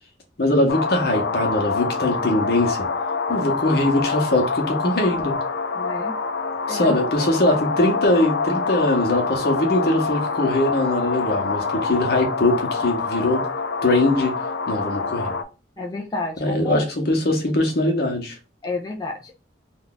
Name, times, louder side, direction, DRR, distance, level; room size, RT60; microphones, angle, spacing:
voice 1, 0.4-2.9 3.3-5.3 6.7-13.4 13.8-14.4 14.7-15.3 16.4-18.4, left 1 dB, 60° left, 0.9 m, -21 dB
sound 1, 0.7-15.4, left 4 dB, 85° left, 0.4 m, -26 dB
voice 2, 5.7-6.1 6.7-6.9 15.8-16.9 18.6-19.4, left 2 dB, 20° left, 0.4 m, -30 dB
2.6 x 2.3 x 3.9 m
head